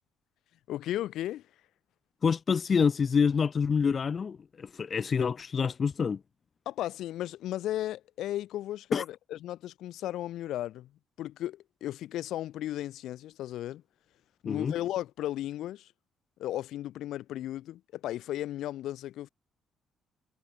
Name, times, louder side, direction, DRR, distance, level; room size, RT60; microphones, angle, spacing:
voice 1, 0.7-1.5 6.6-10.9 11.2-13.8 14.4-15.9 16.4-19.3, left 13 dB, 65° left, 1.7 m, -35 dB
voice 2, 2.2-6.2 8.9-9.0 14.4-14.7, left 6 dB, 25° left, 1.8 m, -27 dB
cardioid pair, 180°, 0 cm